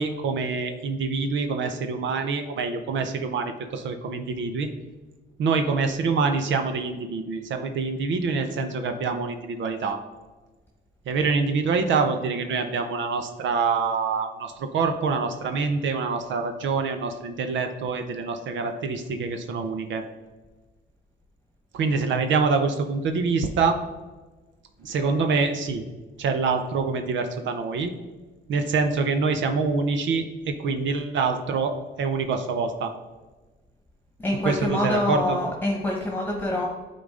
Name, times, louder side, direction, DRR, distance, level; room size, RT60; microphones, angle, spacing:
voice 1, 0.0-4.7 5.4-10.0 11.1-20.0 21.7-23.8 24.8-25.8 26.2-27.9 28.5-32.9 34.4-35.4, right 4 dB, 70° right, 6 dB, 0.7 m, -25 dB
voice 2, 34.2-36.7, left 1 dB, 10° left, -1 dB, 1.3 m, -26 dB
9.5 x 4.0 x 3.7 m, 1.2 s
cardioid pair, 90°, 20 cm